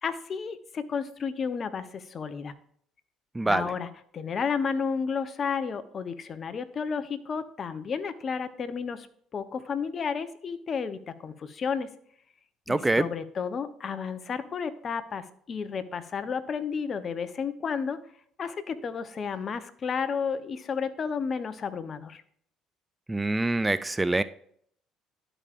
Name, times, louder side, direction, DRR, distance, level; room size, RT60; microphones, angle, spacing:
voice 1, 0.0-2.5 3.4-3.9 4.1-9.1 9.3-11.9 12.7-18.0 18.4-22.2, left 6 dB, 45° left, 12 dB, 0.7 m, -32 dB
voice 2, 3.3-3.7 12.7-13.1 23.1-24.2, right 2 dB, 15° right, 14 dB, 0.3 m, -25 dB
12.0 x 5.0 x 2.5 m, 0.64 s
hypercardioid pair, 65°, 0 cm